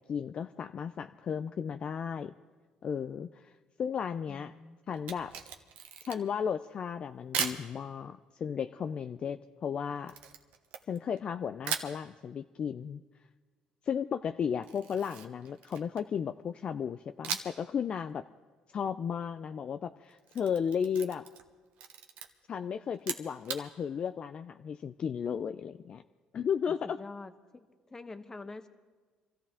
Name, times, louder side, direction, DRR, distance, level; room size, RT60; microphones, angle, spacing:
voice 1, 0.1-2.3 2.8-4.5 4.9-5.3 6.1-10.1 10.9-13.0 13.8-18.2 18.7-21.3 22.5-26.0 26.3-27.0, left 7 dB, 45° left, 9 dB, 0.4 m, -34 dB
voice 2, 4.3-4.8 26.8-28.7, left 3 dB, 20° left, 9 dB, 1.1 m, -46 dB
Camera, 4.9-6.4 7.3-7.6 10.1-11.2 11.6-12.0 14.6-16.1 17.2-17.7 18.0-18.1 20.1-21.5 21.8-22.3 22.9-23.6, right 8 dB, 75° right, 1.2 m, -38 dB
25.0 x 14.5 x 3.7 m, 1.4 s
supercardioid pair, 85°, 2 cm